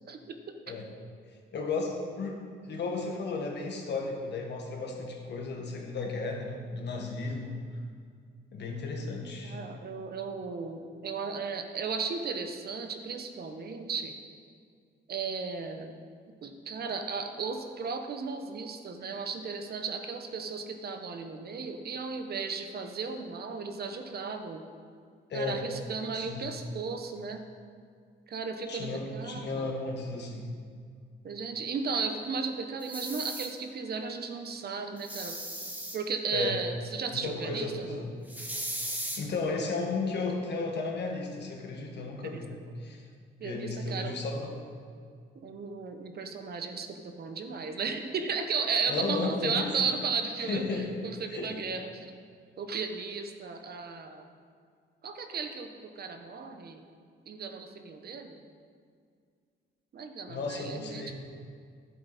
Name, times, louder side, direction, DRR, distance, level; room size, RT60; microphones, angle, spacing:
voice 1, 0.1-0.6 9.4-14.1 15.1-15.9 16.4-24.6 25.3-27.4 28.3-29.7 31.2-35.3 35.9-38.1 42.2-42.6 43.4-44.1 45.3-52.1 52.6-54.2 55.0-55.7 55.9-56.8 57.3-58.4 59.9-61.1, right 5 dB, 50° right, 6 dB, 1.0 m, -35 dB
voice 2, 1.5-7.6 8.5-9.6 25.3-25.6 26.1-26.5 28.7-30.5 36.3-36.6 37.1-38.1 39.0-42.5 42.8-43.0 43.4-44.5 48.9-49.7 50.5-51.0 51.3-51.6 60.3-61.1, left 3 dB, 60° left, 1 dB, 1.7 m, -34 dB
sound 1, 32.8-33.5 35.0-36.0 38.3-39.2, right 1 dB, 10° right, 1.4 m, -37 dB
11.0 x 7.7 x 4.2 m, 2.1 s
cardioid pair, 90°, 20 cm